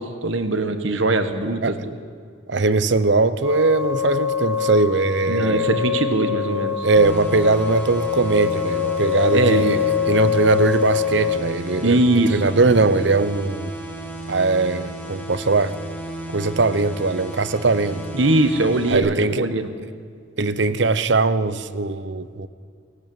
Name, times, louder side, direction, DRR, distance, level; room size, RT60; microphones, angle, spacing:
voice 1, 0.0-1.7 5.3-6.9 9.3-9.6 11.8-12.5 18.1-19.7, right 2 dB, 85° right, 9 dB, 1.6 m, -21 dB
voice 2, 2.5-5.7 6.8-9.8 10.1-12.0 12.3-13.7 14.3-15.7 16.3-18.0 18.9-19.5 20.4-22.5, right 3 dB, 65° right, 15 dB, 0.8 m, -20 dB
sound 1, 3.4-11.4, left 8 dB, 15° right, 1.7 m, -24 dB
sound 2, 7.0-19.0, right 1 dB, 10° left, 1.9 m, -34 dB
18.0 x 17.5 x 9.0 m, 2.2 s
head